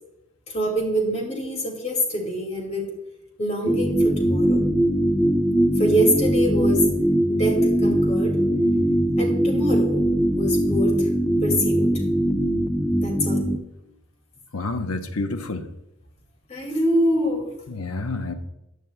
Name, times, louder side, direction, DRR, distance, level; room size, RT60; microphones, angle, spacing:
voice 1, 0.5-2.9 3.4-4.6 5.8-6.9 7.3-8.4 9.2-10.0 10.3-11.1 11.4-11.9 13.0-13.5 16.5-17.5, equal, 30° left, 1 dB, 2.4 m, -25 dB
sound 1, 3.7-13.6, right 1 dB, 5° left, 0.6 m, -21 dB
voice 2, 14.5-15.6 17.7-18.3, left 3 dB, 70° left, 7 dB, 0.9 m, -28 dB
15.0 x 9.1 x 2.3 m, 0.86 s
head